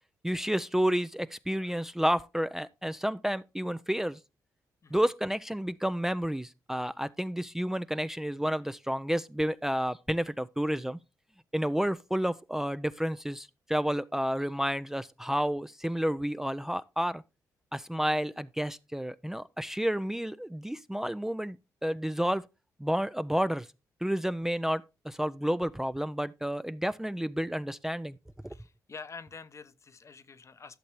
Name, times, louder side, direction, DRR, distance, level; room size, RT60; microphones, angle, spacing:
voice 1, 0.2-4.2 4.9-11.0 11.5-17.2 17.7-22.5 22.8-23.7 24.0-28.2 28.4-28.6, equal, 5° right, 0.4 m, -30 dB
voice 2, 28.4-30.8, left 5 dB, 40° left, 0.7 m, -47 dB
11.5 x 6.6 x 3.1 m
cardioid pair, 65°, 7 cm